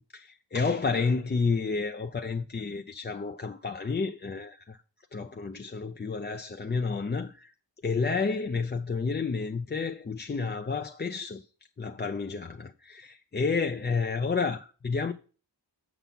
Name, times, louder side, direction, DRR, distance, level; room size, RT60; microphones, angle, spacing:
voice 1, 0.1-4.8 5.1-7.5 7.8-11.4 11.8-15.1, left 4 dB, 25° left, 0.4 m, -30 dB
7.0 x 5.9 x 5.4 m
wide cardioid pair, 70°, 44 cm